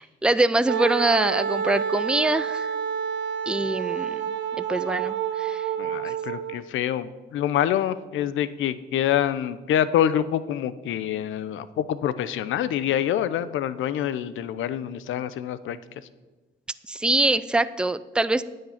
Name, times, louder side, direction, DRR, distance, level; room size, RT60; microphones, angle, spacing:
voice 1, 0.0-2.7 3.5-4.2 4.6-5.7 16.9-18.4, right 2 dB, 5° right, 15 dB, 0.4 m, -24 dB
Wind instrument woodwind instrument, 0.7-6.6, right 8 dB, 70° right, 0.8 m, -28 dB
voice 2, 5.8-15.8, left 10 dB, 80° left, 15 dB, 0.7 m, -26 dB
9.9 x 6.6 x 8.7 m, 1.2 s
cardioid pair, 90°, 20 cm